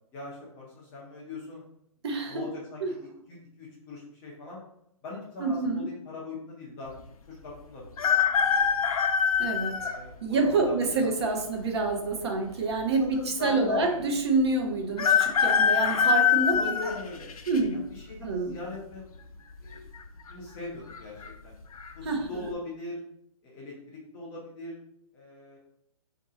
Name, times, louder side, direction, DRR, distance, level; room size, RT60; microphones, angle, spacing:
voice 1, 0.1-1.6 2.3-3.0 3.3-4.6 5.0-6.9 7.3-8.9 9.7-11.4 13.0-14.1 16.0-16.1 16.6-17.4 17.7-19.1 19.6-19.9 20.3-21.6 21.9-23.0 23.4-24.8 25.1-25.6, left 2 dB, 10° left, -5 dB, 0.5 m, -40 dB
voice 2, 2.0-2.5 2.8-2.9 5.4-5.8 9.4-9.8 10.2-16.7 17.5-17.8 18.2-18.5 22.0-22.2, right 3 dB, 45° right, 2 dB, 0.8 m, -27 dB
sound 1, 8.0-10.0 10.7-10.8 11.9-12.5 12.8-12.9 13.1-13.2 15.0-17.6 18.1-18.5 19.7-20.0 20.3-20.4 20.9-21.3 21.7-21.9, left 7 dB, 75° left, 0.6 m, -24 dB
4.0 x 2.8 x 3.6 m, 0.75 s
hypercardioid pair, 165°, 19 cm